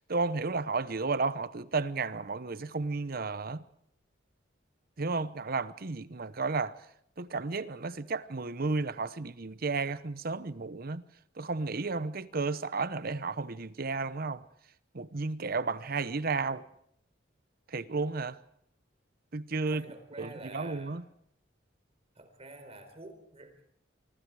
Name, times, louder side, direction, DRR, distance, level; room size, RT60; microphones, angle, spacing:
voice 1, 0.1-3.6 5.0-6.7 7.2-11.0 11.4-14.4 14.9-16.6 17.7-18.4 19.3-19.8 20.2-21.0, right 3 dB, 50° right, 0.9 m, -33 dB
voice 2, 19.7-21.1 22.1-23.7, right 2 dB, 35° right, 4.1 m, -47 dB
25.0 x 24.5 x 4.9 m
head